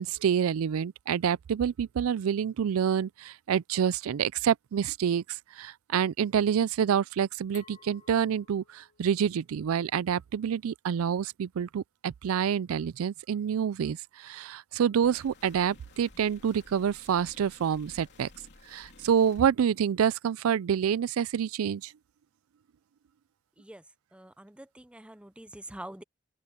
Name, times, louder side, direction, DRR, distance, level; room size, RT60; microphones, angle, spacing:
voice 1, 0.0-18.3 18.7-21.9, right 8 dB, 85° right, 0.4 m, -27 dB
Glass, 7.5-10.3, left 8 dB, 35° left, 2.3 m, -58 dB
sound 1, 15.0-19.4, left 2 dB, 55° left, 3.3 m, -55 dB
voice 2, 24.1-26.0, right 1 dB, 5° right, 0.6 m, -45 dB
head